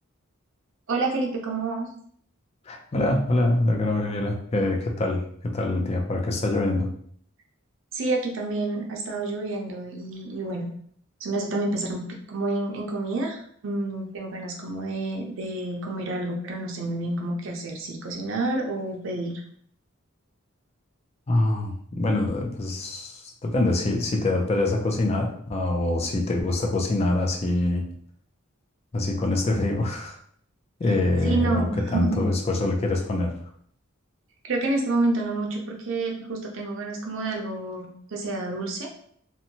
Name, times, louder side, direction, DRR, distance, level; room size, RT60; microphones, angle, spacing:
voice 1, 0.9-1.9 7.9-10.7 11.2-19.3 31.2-32.2 34.4-38.9, right 2 dB, 65° right, 1 dB, 0.5 m, -29 dB
voice 2, 2.7-6.9 21.3-27.9 28.9-30.2 30.8-33.3, left 2 dB, 30° left, 1 dB, 0.4 m, -25 dB
2.7 x 2.2 x 2.8 m, 0.62 s
head